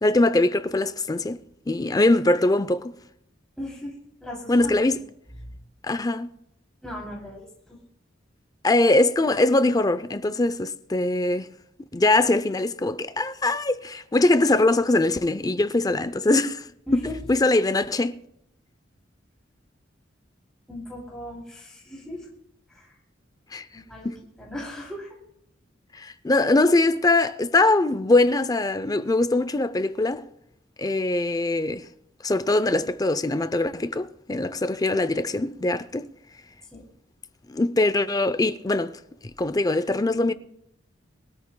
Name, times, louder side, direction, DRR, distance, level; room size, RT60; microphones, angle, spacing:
voice 1, 0.0-1.4 1.7-2.9 4.5-5.0 5.8-6.3 8.6-11.5 11.9-18.2 23.5-23.7 24.0-24.2 25.9-30.3 30.8-31.9 32.2-36.1 37.5-39.0 39.4-40.3, left 2 dB, 20° left, 0.5 m, -22 dB
voice 2, 3.6-3.9 4.2-4.8 5.4-5.6 6.8-7.8 16.9-17.2 20.7-22.3 22.7-23.0 23.7-24.1 24.4-25.1 36.7-36.8, left 1 dB, 5° left, 3.0 m, -37 dB
23.0 x 13.5 x 2.2 m
head